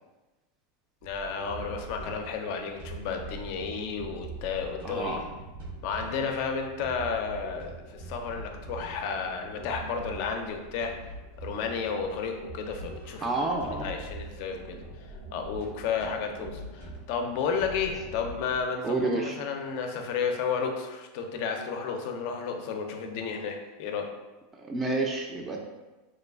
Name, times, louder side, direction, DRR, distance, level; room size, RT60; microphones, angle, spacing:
voice 1, 1.0-5.2 5.8-10.9 11.4-13.3 13.6-14.8 15.3-24.1, left 5 dB, 60° left, 4 dB, 0.4 m, -32 dB
sound 1, 1.0-18.6, right 2 dB, 85° right, 0.8 m, -43 dB
voice 2, 4.8-5.2 13.2-13.9 18.8-19.4 24.5-25.7, right 2 dB, 25° right, 1 dB, 0.3 m, -29 dB
3.0 x 2.3 x 2.3 m, 1.2 s
hypercardioid pair, 100°, 0 cm